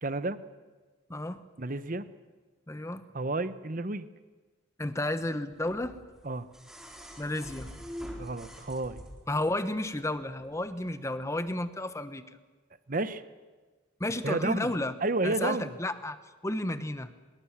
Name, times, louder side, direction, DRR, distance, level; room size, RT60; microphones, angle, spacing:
voice 1, 0.0-0.4 1.6-2.0 3.1-4.1 6.2-6.5 8.2-9.0 12.9-13.2 14.2-14.8 15.0-15.7, right 2 dB, 45° right, 13 dB, 1.0 m, -31 dB
voice 2, 1.1-1.4 2.7-3.0 4.8-6.0 7.2-7.7 9.3-12.2 14.0-14.9 15.2-16.2 16.4-17.1, left 1 dB, 15° left, 11 dB, 1.0 m, -32 dB
sound 1, 5.7-9.4 10.7-10.8, equal, ahead, 3.7 m, -44 dB
24.0 x 21.5 x 7.5 m, 1.3 s
head